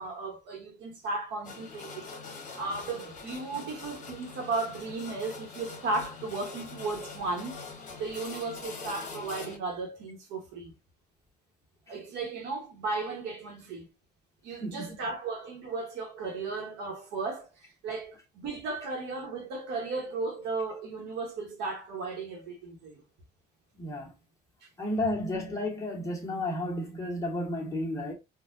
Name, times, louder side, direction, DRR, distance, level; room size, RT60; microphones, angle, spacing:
voice 1, 0.0-7.5 8.0-10.7 11.9-13.9 14.4-23.0, right 3 dB, 85° right, 1.1 m, -35 dB
sound 1, 1.4-9.6, left 4 dB, 50° left, 1.1 m, -43 dB
voice 2, 14.6-15.0 23.7-24.1 24.8-28.1, left 1 dB, 20° left, 1.2 m, -32 dB
3.7 x 2.3 x 2.6 m
cardioid pair, 110°, 17 cm